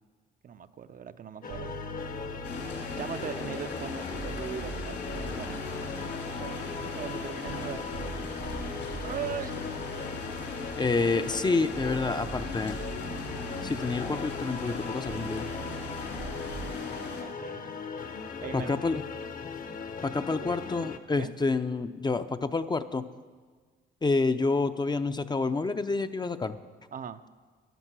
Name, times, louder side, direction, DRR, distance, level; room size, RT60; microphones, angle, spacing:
voice 1, 0.4-1.8 2.7-5.8 6.4-7.9 9.0-9.5 16.0-16.3 16.7-17.7 18.4-18.8 20.3-20.9 21.2-21.3 26.9-27.2, right 7 dB, 45° right, 10 dB, 0.6 m, -40 dB
sound 1, 1.4-21.0, left 5 dB, 45° left, 0.9 m, -39 dB
sound 2, 1.5-3.7 4.1-11.2 11.7-16.7, right 3 dB, 85° right, 1.0 m, -43 dB
sound 3, 2.4-17.2, left 4 dB, 70° left, 3.0 m, -40 dB
voice 2, 10.8-12.8 13.6-15.5 18.5-19.0 20.0-23.0 24.0-26.6, left 3 dB, 20° left, 10 dB, 0.5 m, -28 dB
12.0 x 10.5 x 6.1 m, 1.5 s
cardioid pair, 90°, 20 cm